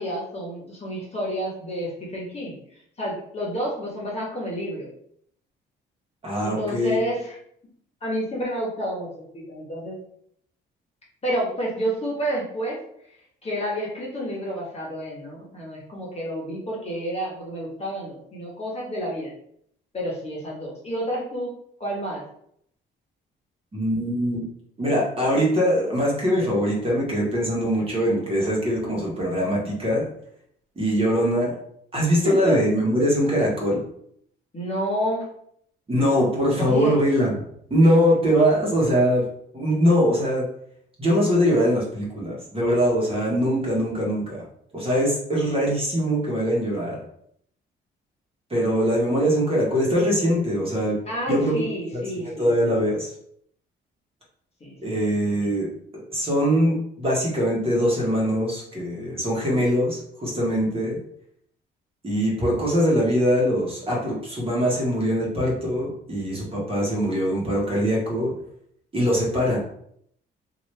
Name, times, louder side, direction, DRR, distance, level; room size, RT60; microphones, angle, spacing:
voice 1, 0.0-2.6 3.0-4.9 6.4-7.4 8.0-9.1 9.3-9.9 11.2-12.8 13.4-19.3 19.9-21.5 21.8-22.2 32.2-32.6 34.5-35.2 36.6-36.9 51.1-52.9 54.6-55.0 55.3-55.4, equal, 30° left, -4 dB, 1.3 m, -29 dB
voice 2, 6.2-7.0 23.7-24.4 24.8-30.1 30.7-31.5 31.9-33.8 35.9-37.3 37.7-39.2 39.5-40.4 41.0-44.4 44.7-47.0 48.5-51.0 51.3-51.5 51.9-52.0 52.4-53.1 54.8-55.7 56.1-61.0 62.0-68.3 68.9-69.6, equal, 30° right, -4 dB, 1.4 m, -22 dB
2.9 x 2.8 x 3.3 m, 0.69 s
cardioid pair, 90°, 20 cm